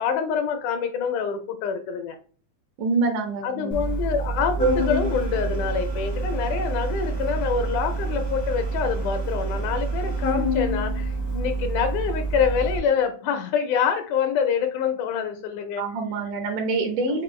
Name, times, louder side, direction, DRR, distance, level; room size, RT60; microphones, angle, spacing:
voice 1, 0.0-2.2 3.4-15.9, left 7 dB, 80° left, 6 dB, 1.9 m, -26 dB
voice 2, 2.8-3.8 15.8-17.2, right 3 dB, 80° right, 4 dB, 2.2 m, -26 dB
Organ, 3.7-12.8, right 2 dB, 30° left, 0.4 m, -27 dB
6.0 x 2.4 x 3.0 m, 0.41 s
omnidirectional pair, 3.7 m